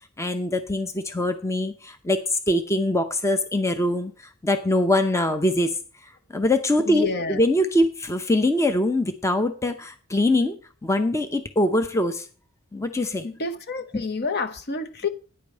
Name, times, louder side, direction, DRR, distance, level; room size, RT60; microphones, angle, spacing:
voice 1, 0.2-5.8 6.0-12.3 12.7-13.2 13.9-14.0, left 1 dB, 15° left, 0.7 m, -23 dB
voice 2, 6.9-7.4 13.2-15.1, left 4 dB, 50° left, 1.0 m, -28 dB
9.6 x 5.2 x 7.3 m
head